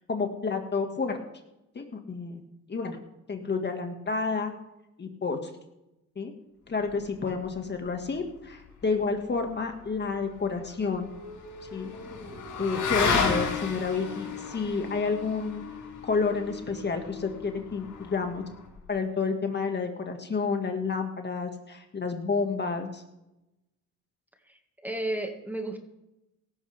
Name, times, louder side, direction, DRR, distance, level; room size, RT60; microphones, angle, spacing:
voice 1, 0.1-1.2 1.7-2.4 2.7-3.0 3.3-4.5 5.0-5.5 6.2-6.3 6.7-11.1 11.7-11.9 12.6-15.7 16.0-18.4 18.9-23.0, left 4 dB, 35° left, 4 dB, 2.1 m, -30 dB
Motorcycle / Accelerating revving vroom, 10.0-18.8, left 5 dB, 80° left, 6.1 m, -33 dB
voice 2, 24.5-25.8, right 1 dB, 5° right, 4 dB, 2.1 m, -33 dB
17.5 x 14.0 x 3.6 m, 0.91 s
cardioid pair, 90°, 30 cm